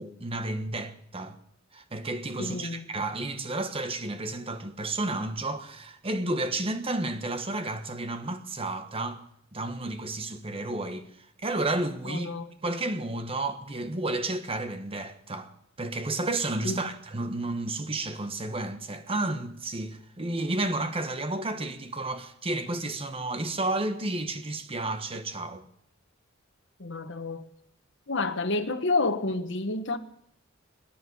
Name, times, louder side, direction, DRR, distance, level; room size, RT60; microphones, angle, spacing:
voice 1, 0.0-1.4 1.7-9.2 9.5-11.1 11.4-12.3 12.6-15.5 15.8-25.6, right 2 dB, 30° right, 1.2 m, -31 dB
voice 2, 2.4-2.9 12.0-12.5 16.6-16.9 26.8-27.5 28.1-30.0, left 3 dB, 65° left, 1.3 m, -29 dB
24.5 x 10.0 x 5.5 m
head